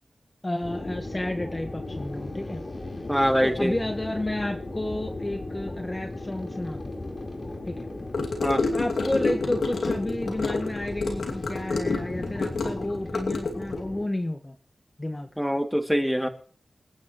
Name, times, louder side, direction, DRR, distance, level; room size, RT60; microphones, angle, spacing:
voice 1, 0.4-2.6 3.4-6.9 7.6-7.9 8.7-14.6 15.0-15.3, left 1 dB, 25° left, 5 dB, 1.4 m, -31 dB
sound 1, 0.6-14.1, left 2 dB, 50° left, 4.3 m, -36 dB
voice 2, 3.1-3.7 8.4-8.6 15.4-16.3, equal, ahead, 5 dB, 2.6 m, -24 dB
Gurgling / Car passing by / Sink (filling or washing), 8.1-13.8, left 3 dB, 85° left, 2.5 m, -28 dB
28.0 x 9.5 x 3.2 m, 0.44 s
cardioid pair, 45°, 0 cm